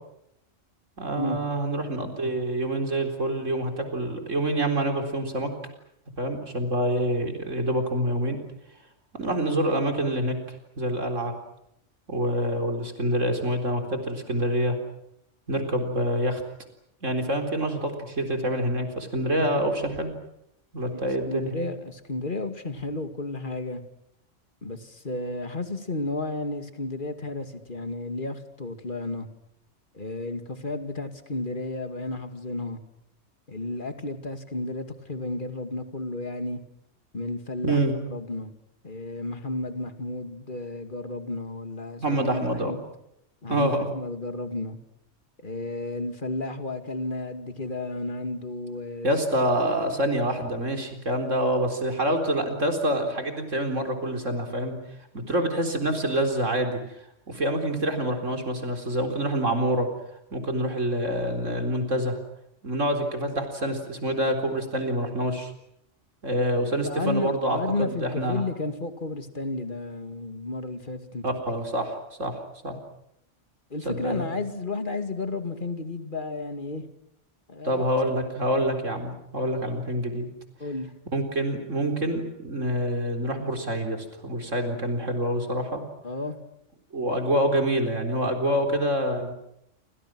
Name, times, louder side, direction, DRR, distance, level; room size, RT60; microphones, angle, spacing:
voice 1, 1.0-5.5 6.2-8.4 9.2-10.3 10.8-11.3 12.1-14.8 15.5-16.4 17.0-20.1 20.7-21.5 37.6-37.9 42.0-42.8 43.5-43.9 49.0-54.7 55.1-56.8 57.3-59.9 60.3-62.2 62.6-65.5 66.2-68.4 71.2-72.3 72.6-72.8 73.9-74.3 77.6-80.3 81.1-85.8 86.9-89.3, right 1 dB, 90° right, 5 dB, 4.3 m, -26 dB
voice 2, 20.9-23.8 24.6-29.3 29.9-32.8 33.5-36.6 37.1-37.8 38.1-38.5 38.8-42.8 43.4-44.8 45.4-49.1 66.8-71.2 73.7-76.8 77.5-77.8 80.6-80.9 86.0-86.4, left 2 dB, 40° left, 8 dB, 2.5 m, -32 dB
29.0 x 25.5 x 6.3 m, 0.78 s
omnidirectional pair, 1.3 m